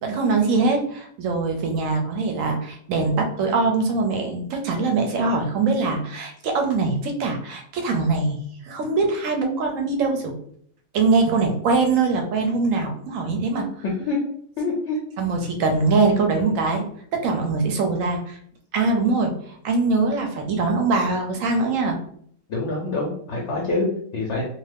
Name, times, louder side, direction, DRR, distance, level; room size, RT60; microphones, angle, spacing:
voice 1, 0.0-8.4 8.6-10.3 10.9-13.7 15.2-16.8 17.1-18.4 18.7-22.0, right 3 dB, 65° right, 3 dB, 0.9 m, -22 dB
voice 2, 14.6-15.0 22.5-24.4, left 3 dB, 60° left, -2 dB, 0.8 m, -26 dB
2.5 x 2.4 x 3.3 m, 0.63 s
omnidirectional pair, 1.6 m